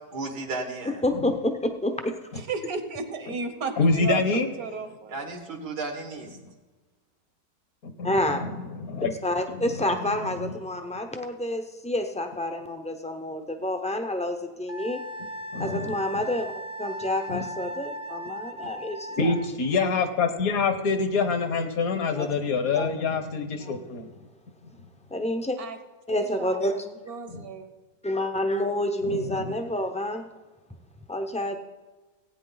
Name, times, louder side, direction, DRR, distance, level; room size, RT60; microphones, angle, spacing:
voice 1, 0.1-1.0 5.1-6.3, right 3 dB, 85° right, 2 dB, 2.2 m, -34 dB
voice 2, 0.9-2.2 8.0-8.4 9.2-15.0 15.6-16.5 16.8-19.3 22.2-22.3 22.7-22.9 23.6-23.9 25.1-25.6 26.1-26.9 28.0-30.3 31.1-31.6, left 1 dB, 10° left, 6 dB, 0.4 m, -28 dB
voice 3, 2.4-5.3 25.6-25.8 26.1-27.7, right 5 dB, 65° right, 8 dB, 1.5 m, -34 dB
voice 4, 3.8-4.5 8.0-9.1 9.5-9.6 10.4-10.5 15.5-16.2 17.3-17.4 19.2-24.1 27.3-27.4 29.0-29.5, left 4 dB, 65° left, 8 dB, 1.5 m, -26 dB
Wind instrument woodwind instrument, 14.7-19.5, equal, 45° right, 0.8 m, -38 dB
16.5 x 9.1 x 4.0 m, 1.2 s
omnidirectional pair, 1.7 m